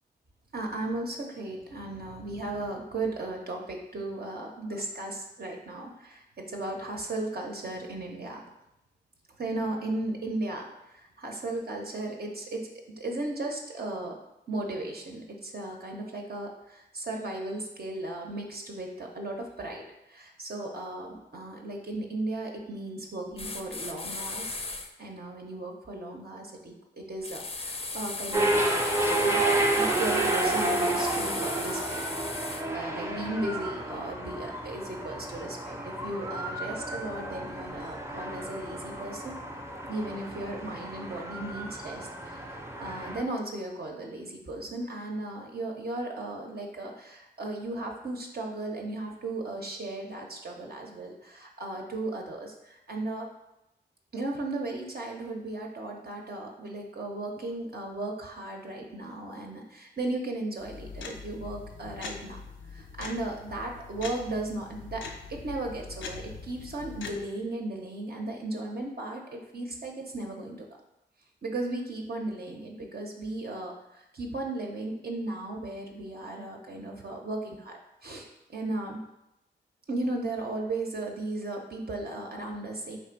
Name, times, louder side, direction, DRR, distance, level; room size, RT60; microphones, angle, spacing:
voice 1, 0.5-8.4 9.4-12.7 13.0-14.2 14.5-24.6 25.0-28.8 29.2-39.3 39.9-53.3 54.1-62.4 62.7-65.0 65.3-70.7 71.4-79.0 79.9-83.0, right 2 dB, 55° right, 0 dB, 0.7 m, -36 dB
sound 1, 23.4-24.9 27.2-32.6, left 3 dB, 30° left, 0.5 m, -36 dB
sound 2, 28.3-43.2, right 2 dB, 15° right, 0.6 m, -31 dB
sound 3, 60.6-67.3, left 4 dB, 90° left, 0.4 m, -42 dB
3.3 x 2.5 x 4.4 m, 0.87 s
cardioid pair, 45°, 19 cm